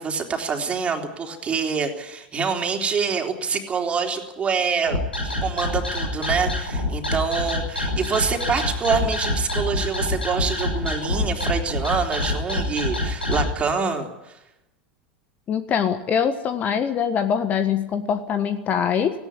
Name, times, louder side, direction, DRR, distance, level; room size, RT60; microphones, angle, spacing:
voice 1, 0.0-14.4, right 5 dB, 25° right, 3 dB, 3.6 m, -26 dB
sound 1, 4.9-13.5, left 2 dB, 85° left, 6.4 m, -25 dB
voice 2, 15.5-19.1, left 7 dB, 30° left, 10 dB, 1.5 m, -23 dB
18.5 x 17.0 x 9.7 m, 0.92 s
figure-of-eight pair, 85°, 5 cm